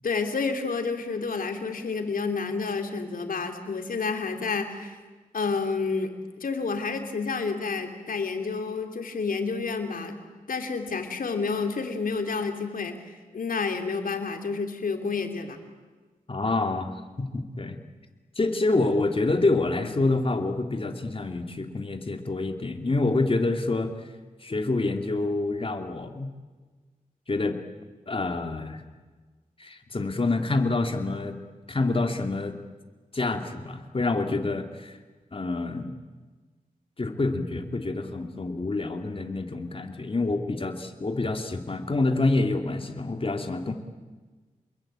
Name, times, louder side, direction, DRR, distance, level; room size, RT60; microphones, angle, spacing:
voice 1, 0.0-5.0 5.3-6.1 6.4-10.2 10.5-15.6, left 4 dB, 80° left, 5 dB, 3.4 m, -29 dB
voice 2, 16.3-16.9 17.2-17.8 18.4-24.1 24.4-26.3 27.3-27.6 28.1-28.8 29.6-31.4 31.7-32.6 33.1-35.0 35.3-35.9 37.0-43.7, left 2 dB, 40° left, 5 dB, 2.7 m, -27 dB
28.5 x 21.5 x 8.9 m, 1.3 s
cardioid pair, 70°, 14 cm